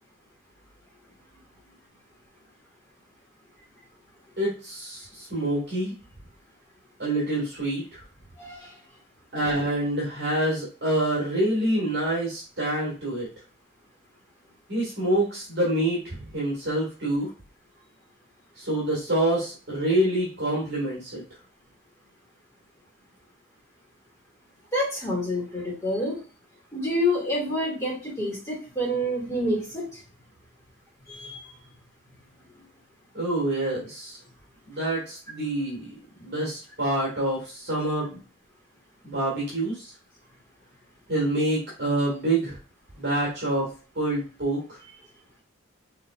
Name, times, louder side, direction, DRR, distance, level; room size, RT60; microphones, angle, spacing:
voice 1, 4.4-5.9 7.0-8.0 9.3-13.3 14.7-17.3 18.6-21.2 33.1-34.2 34.7-35.9 36.2-38.2 39.0-39.9 41.1-42.6 43.0-43.7 44.0-44.6, right 1 dB, 50° right, -5 dB, 2.0 m, -26 dB
voice 2, 8.4-8.7 24.7-26.2 26.7-30.0 31.1-31.5 32.5-32.6, left 1 dB, 15° left, -5 dB, 2.2 m, -28 dB
5.8 x 3.3 x 2.4 m, 0.35 s
head